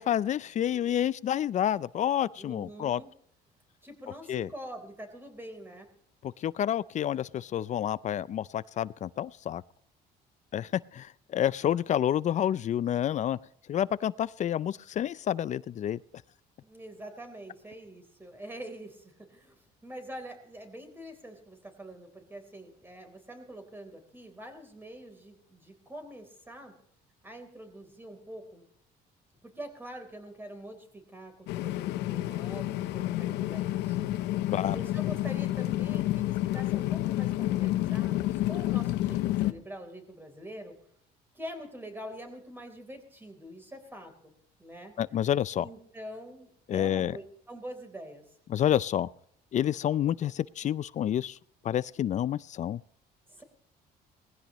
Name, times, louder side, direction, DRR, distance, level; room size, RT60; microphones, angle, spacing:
voice 1, 0.0-3.0 4.3-4.5 6.2-9.6 10.5-13.4 13.7-16.0 34.5-34.8 45.0-45.7 46.7-47.2 48.5-49.1 49.5-51.4 51.6-52.8, left 10 dB, 45° left, 0.5 m, -29 dB
voice 2, 2.4-3.1 3.8-5.9 16.6-26.7 27.2-28.7 29.4-34.0 34.7-40.7 41.3-44.3 44.6-44.9 45.6-48.2 53.3-53.4, equal, 15° right, 3.7 m, -45 dB
sound 1, 31.5-39.5, left 15 dB, 90° left, 0.7 m, -29 dB
19.5 x 15.5 x 3.1 m
cardioid pair, 110°, 17 cm